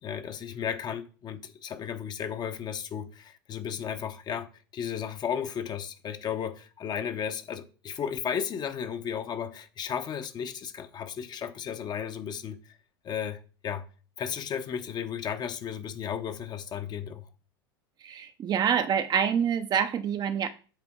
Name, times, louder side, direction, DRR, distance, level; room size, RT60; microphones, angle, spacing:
voice 1, 0.0-12.8 13.0-13.9 14.2-17.3, left 8 dB, 35° left, 0.8 m, -34 dB
voice 2, 18.0-20.5, right 8 dB, 30° right, 0.6 m, -26 dB
7.6 x 3.7 x 3.6 m
hypercardioid pair, 95°, 13 cm